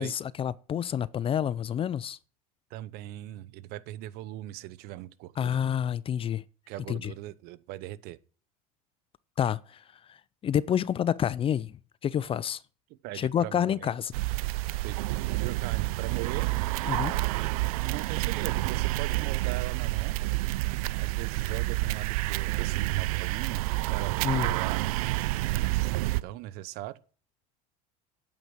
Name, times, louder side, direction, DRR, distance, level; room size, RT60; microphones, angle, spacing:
voice 1, 0.0-2.2 5.4-6.4 6.9-7.1 9.4-9.8 10.1-10.2 10.4-11.7 12.0-12.6 13.1-14.1 16.9-17.2 24.2-24.5, left 9 dB, 30° left, 0.5 m, -28 dB
voice 2, 2.7-5.6 6.7-8.2 12.9-13.9 14.8-16.5 17.7-20.2 20.9-24.8 25.6-27.0, right 15 dB, 60° right, 0.9 m, -40 dB
sound 1, 14.1-26.2, right 19 dB, 80° right, 0.5 m, -29 dB
9.0 x 9.0 x 6.1 m
supercardioid pair, 95°, 18 cm